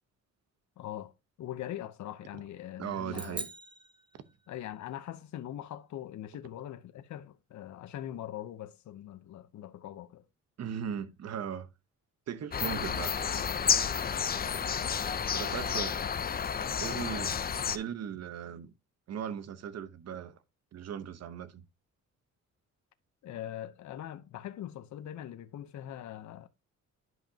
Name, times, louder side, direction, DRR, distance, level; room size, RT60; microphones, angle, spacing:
voice 1, 0.8-1.1 1.4-3.4 4.5-10.2 14.4-14.9 16.9-17.1 23.2-26.5, left 12 dB, 70° left, 0.8 m, -42 dB
voice 2, 2.8-3.5 10.6-11.7 12.3-13.2 15.3-16.0 16.8-17.3 17.7-18.7 19.1-20.4 20.7-21.6, right 8 dB, 55° right, 1.0 m, -38 dB
sound 1, 3.1-4.8, right 3 dB, 15° right, 0.8 m, -43 dB
sound 2, 12.5-17.8, left 7 dB, 30° left, 0.6 m, -31 dB
11.0 x 5.3 x 2.8 m
cardioid pair, 120°, 30 cm